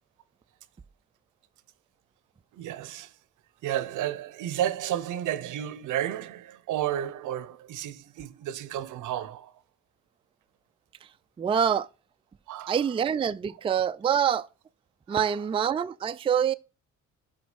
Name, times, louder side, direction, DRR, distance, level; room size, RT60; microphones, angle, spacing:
voice 1, 2.5-3.1 3.6-9.5 12.5-12.8 15.1-15.4, right 11 dB, 80° right, 0.7 m, -32 dB
voice 2, 11.4-11.9 12.7-14.5 15.1-16.5, right 8 dB, 20° right, 0.3 m, -25 dB
5.9 x 5.2 x 6.2 m
cardioid pair, 90°, 30 cm